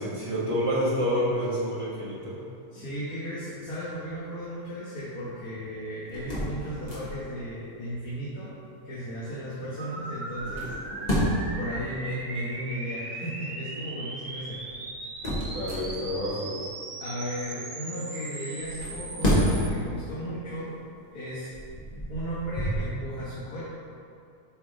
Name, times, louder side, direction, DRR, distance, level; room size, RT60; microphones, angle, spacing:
voice 1, 0.0-2.4 15.4-16.6, equal, 20° right, -8 dB, 1.5 m, -28 dB
voice 2, 2.7-8.5 8.8-11.1 11.6-14.6 17.0-20.7 21.1-21.5 22.1-23.6, equal, 70° left, -10 dB, 1.7 m, -35 dB
sound 1, 6.1-7.4 10.3-11.6 14.5-16.3 18.6-19.9 20.4-20.6 21.3-22.9, equal, 30° left, 1.3 m, -29 dB
sound 2, 9.8-19.7, right 2 dB, 50° right, 0.9 m, -39 dB
8.2 x 3.6 x 3.8 m, 2.4 s
omnidirectional pair, 1.6 m